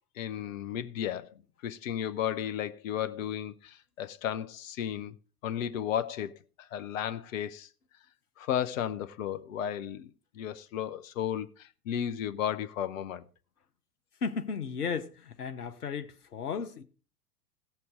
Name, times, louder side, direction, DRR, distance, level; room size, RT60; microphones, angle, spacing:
voice 1, 0.2-1.3 1.6-5.1 5.4-6.3 6.6-7.7 8.4-13.2, left 10 dB, 60° left, 1.0 m, -34 dB
voice 2, 14.2-16.8, left 5 dB, 75° left, 1.1 m, -35 dB
17.5 x 6.9 x 3.7 m
figure-of-eight pair, 90°, 46 cm